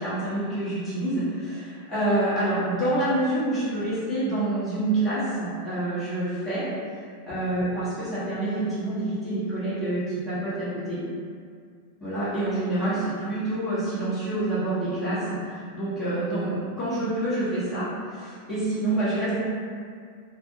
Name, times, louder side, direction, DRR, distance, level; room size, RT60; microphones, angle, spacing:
voice 1, 0.0-6.6 7.2-11.0 12.0-19.4, right 1 dB, 10° left, -13 dB, 1.2 m, -27 dB
2.5 x 2.3 x 2.8 m, 2.2 s
figure-of-eight pair, 90°, 0 cm